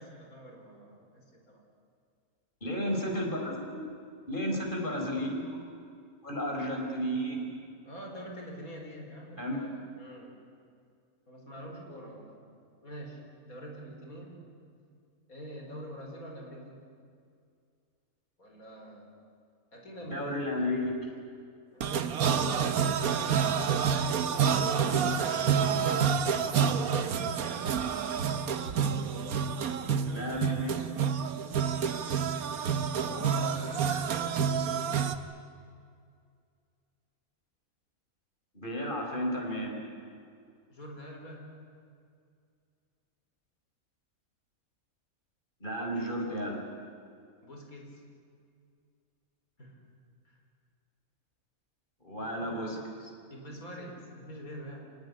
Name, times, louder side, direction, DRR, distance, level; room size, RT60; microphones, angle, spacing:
voice 1, 0.0-1.6 7.8-10.4 11.3-12.4 12.8-14.4 15.3-16.8 18.4-19.1 19.7-20.4 21.7-22.1 25.5-26.2 32.9-34.8 40.7-41.5 47.4-48.0 49.6-49.8 50.2-50.4 53.3-54.9, equal, 80° left, 1 dB, 5.0 m, -45 dB
voice 2, 2.6-3.8 4.3-5.5 6.2-7.5 9.4-9.6 20.1-21.0 24.8-25.2 30.1-30.8 38.5-39.8 45.6-46.6 52.0-53.1, equal, 35° left, 0 dB, 5.0 m, -33 dB
sound 1, 21.8-35.2, right 7 dB, 80° right, 1.5 m, -28 dB
27.5 x 17.5 x 9.9 m, 2.3 s
omnidirectional pair, 1.5 m